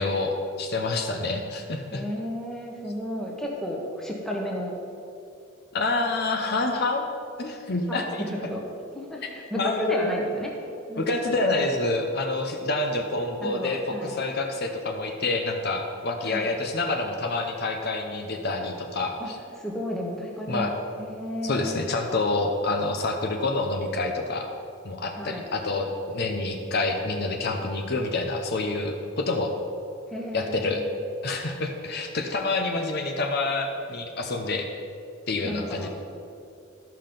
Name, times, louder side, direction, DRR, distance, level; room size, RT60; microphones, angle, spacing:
voice 1, 0.0-2.0 5.7-7.1 7.4-8.2 9.6-10.2 11.0-19.4 20.5-20.7 21.4-24.5 24.8-25.9 26.1-29.5 30.3-30.8 31.2-34.7 35.3-35.9, left 2 dB, 50° left, 3 dB, 0.7 m, -27 dB
voice 2, 1.9-4.7 7.9-8.6 8.9-10.5 10.9-11.7 13.4-14.1 16.2-16.5 19.2-19.3 19.6-20.7 21.0-21.9 25.1-25.4 30.1-30.9 35.4-35.9, equal, ahead, -2 dB, 1.2 m, -32 dB
12.0 x 5.7 x 5.2 m, 2.6 s
head